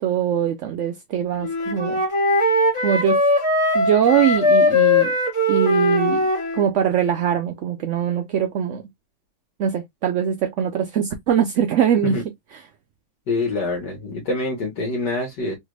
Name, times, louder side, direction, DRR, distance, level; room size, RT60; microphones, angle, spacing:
voice 1, 0.0-2.0 2.8-3.2 3.7-5.1 5.5-6.2 6.5-8.8 9.6-12.1, right 9 dB, 85° right, 0.6 m, -22 dB
Wind instrument woodwind instrument, 1.4-6.7, left 2 dB, 20° left, 1.1 m, -19 dB
voice 2, 13.3-15.6, left 2 dB, 75° left, 1.7 m, -25 dB
3.4 x 3.2 x 2.3 m
omnidirectional pair, 1.9 m